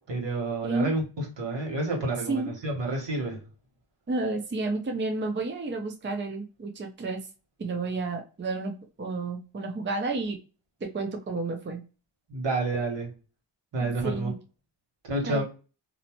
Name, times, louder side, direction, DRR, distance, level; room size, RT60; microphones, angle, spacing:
voice 1, 0.1-3.4 12.3-13.1 13.7-14.3 15.0-15.4, right 2 dB, 65° right, 1.4 m, -29 dB
voice 2, 4.1-7.2 7.6-10.4 10.9-11.8 13.8-14.4 15.3-15.4, right 3 dB, 25° right, 0.6 m, -31 dB
2.7 x 2.0 x 2.9 m
cardioid pair, 50°, 46 cm